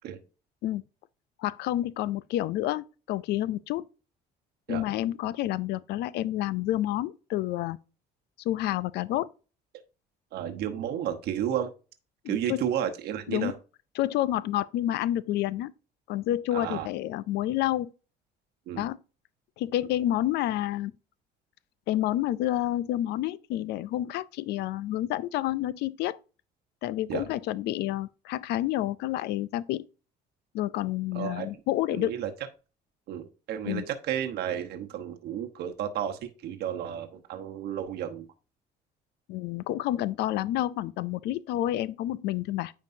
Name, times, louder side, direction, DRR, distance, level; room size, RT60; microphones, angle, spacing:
voice 1, 1.4-3.9 4.7-7.8 8.4-9.3 12.2-12.6 13.3-13.5 14.0-15.7 16.1-17.9 18.8-19.0 19.6-20.9 21.9-26.2 26.8-29.8 30.5-32.2 33.7-33.8 39.3-42.7, left 13 dB, 80° left, 0.4 m, -29 dB
voice 2, 10.3-11.7 12.3-13.5 16.5-16.9 18.7-18.8 27.1-27.2 31.1-31.5 31.9-32.3 33.1-38.3, right 10 dB, 75° right, 1.0 m, -32 dB
9.3 x 4.7 x 2.6 m
cardioid pair, 110°, 17 cm